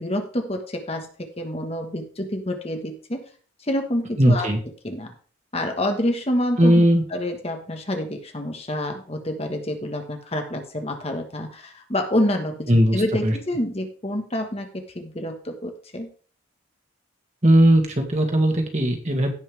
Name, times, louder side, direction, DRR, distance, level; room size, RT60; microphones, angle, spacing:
voice 1, 0.0-3.2 3.6-4.5 4.8-5.1 5.5-16.1, left 1 dB, 30° left, 4 dB, 1.4 m, -28 dB
voice 2, 4.2-4.6 6.6-7.0 12.7-13.3 17.4-19.3, right 1 dB, 35° right, 3 dB, 2.2 m, -18 dB
16.5 x 5.7 x 3.5 m, 0.40 s
head